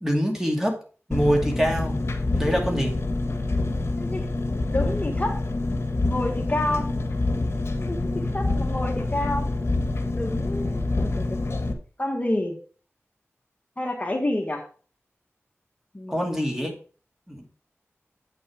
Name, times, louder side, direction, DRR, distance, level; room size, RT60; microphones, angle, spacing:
voice 1, 0.0-0.8 1.1-2.0 2.3-2.9 16.1-16.7 17.3-17.4, equal, 10° right, 1 dB, 2.7 m, -24 dB
Engine, 1.1-11.7, left 2 dB, 60° left, 1.5 m, -26 dB
voice 2, 4.0-4.3 4.7-5.4 6.0-6.9 7.8-9.5 10.0-11.4 12.0-12.6 13.8-14.6 15.9-16.4, left 1 dB, 30° left, 2 dB, 1.5 m, -29 dB
8.7 x 6.6 x 4.8 m, 0.39 s
wide cardioid pair, 75°, 5 cm